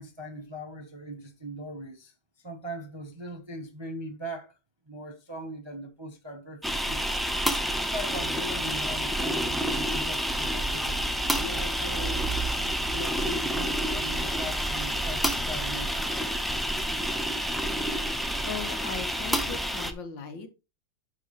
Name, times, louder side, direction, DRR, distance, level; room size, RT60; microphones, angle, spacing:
voice 1, 0.0-4.6 4.9-7.5 7.7-11.0 11.4-12.3 12.9-16.2, equal, 20° right, 0.8 m, -40 dB
sound 1, 6.6-19.9, equal, ahead, 0.4 m, -29 dB
voice 2, 18.5-20.5, left 5 dB, 90° left, 2.1 m, -38 dB
12.0 x 4.6 x 3.2 m
omnidirectional pair, 2.0 m